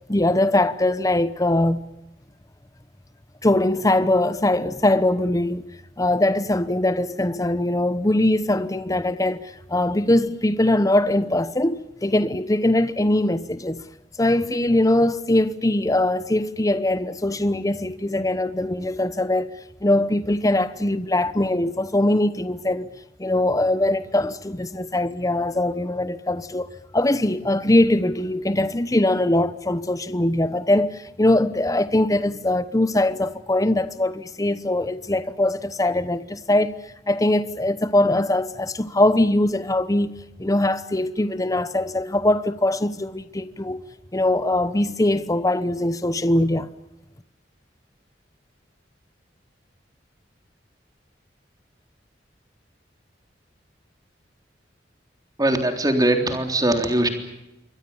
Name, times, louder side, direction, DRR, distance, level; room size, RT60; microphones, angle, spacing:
voice 1, 0.1-1.8 3.4-5.6 6.0-13.8 14.2-19.5 19.8-22.9 23.2-36.8 37.1-43.8 44.1-46.7, left 1 dB, 20° left, 0.9 m, -21 dB
voice 2, 55.4-57.1, right 1 dB, 20° right, 3.7 m, -21 dB
27.5 x 23.5 x 7.2 m
head